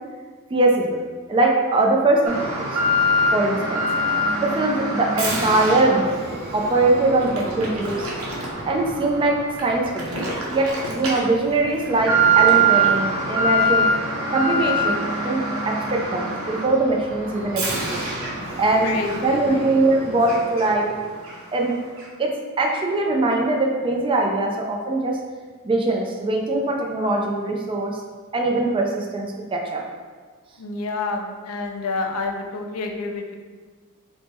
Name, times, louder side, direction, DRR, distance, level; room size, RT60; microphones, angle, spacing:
voice 1, 0.5-1.0 1.3-2.7 3.3-3.8 4.4-6.2 6.5-7.9 8.6-9.4 9.6-13.9 14.3-17.7 18.6-19.0 19.2-20.9 21.5-21.8 22.2-22.3 22.6-25.2 25.6-27.9 28.3-29.8, right 2 dB, 25° right, 0 dB, 0.3 m, -21 dB
Alarm, 2.3-20.9 21.2-21.4 22.0-22.1, right 2 dB, 70° right, 0.8 m, -24 dB
voice 2, 18.8-19.6 30.6-33.3, left 3 dB, 85° left, 4 dB, 0.4 m, -29 dB
3.4 x 2.1 x 4.2 m, 1.5 s
head